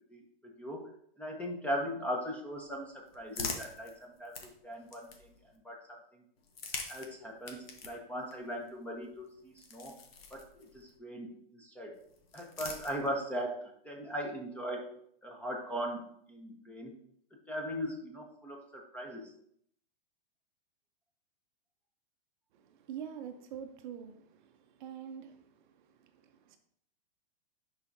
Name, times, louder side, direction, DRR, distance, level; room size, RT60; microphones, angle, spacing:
voice 1, 0.1-0.9 1.2-5.3 5.6-5.8 6.9-10.0 10.3-12.0 12.3-14.9 15.2-16.9 17.3-19.3, equal, 5° left, 1.3 m, -39 dB
sound 1, 2.5-5.6 6.4-11.0 11.9-13.4, left 4 dB, 80° left, 1.4 m, -45 dB
voice 2, 22.5-26.6, right 8 dB, 55° right, 0.8 m, -46 dB
10.5 x 5.0 x 2.8 m
hypercardioid pair, 130°, 29 cm